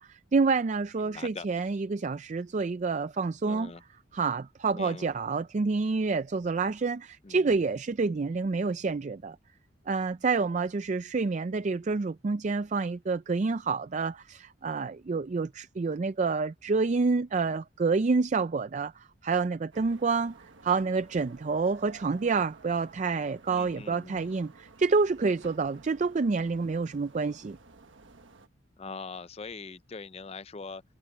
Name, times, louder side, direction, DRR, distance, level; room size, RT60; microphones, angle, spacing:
voice 1, 0.1-3.7 4.1-9.4 9.9-20.4 20.6-27.6, right 4 dB, 40° right, 0.4 m, -28 dB
voice 2, 1.0-1.5 3.4-3.8 4.7-5.1 7.2-7.5 23.5-24.3 28.8-30.8, left 4 dB, 35° left, 0.5 m, -42 dB
sound 1, 19.7-28.5, right 3 dB, 85° right, 1.3 m, -54 dB
head